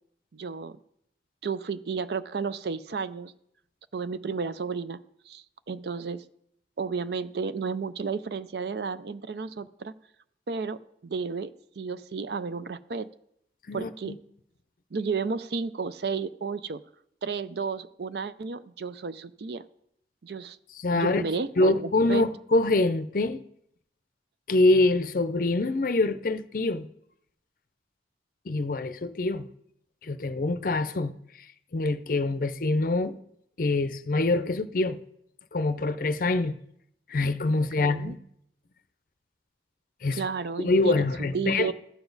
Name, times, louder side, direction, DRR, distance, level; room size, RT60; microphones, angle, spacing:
voice 1, 0.3-0.8 1.4-3.3 3.9-5.0 5.3-6.2 6.8-9.9 10.5-11.5 11.8-13.1 13.7-14.2 14.9-16.8 17.2-19.6 20.2-20.6 20.9-22.3 37.8-38.2 40.1-41.1 41.3-41.7, right 5 dB, 65° right, 0.5 m, -32 dB
voice 2, 13.7-14.2 20.8-21.2 21.6-23.4 24.5-26.9 28.5-29.5 30.0-31.1 31.7-33.1 33.6-35.0 35.5-36.6 37.1-38.2 40.0-40.2 40.6-41.7, left 2 dB, 50° left, 0.5 m, -25 dB
14.0 x 7.0 x 4.0 m
head